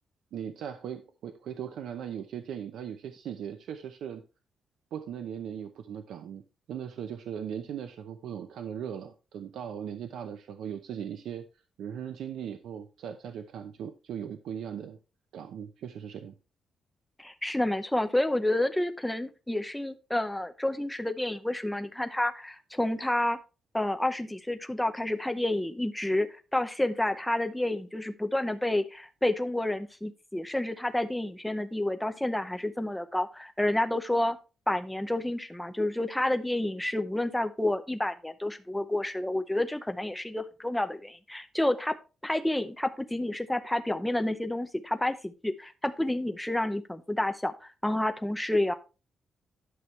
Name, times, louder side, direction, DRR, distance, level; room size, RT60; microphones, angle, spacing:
voice 1, 0.3-4.2 4.9-6.4 6.7-11.4 11.8-15.0 15.3-16.3, right 8 dB, 85° right, 8 dB, 0.7 m, -38 dB
voice 2, 17.2-23.4 23.7-34.4 34.7-41.9 42.2-48.7, left 1 dB, 5° left, 8 dB, 0.7 m, -29 dB
11.0 x 6.2 x 3.2 m, 0.31 s
wide cardioid pair, 155°, 0 cm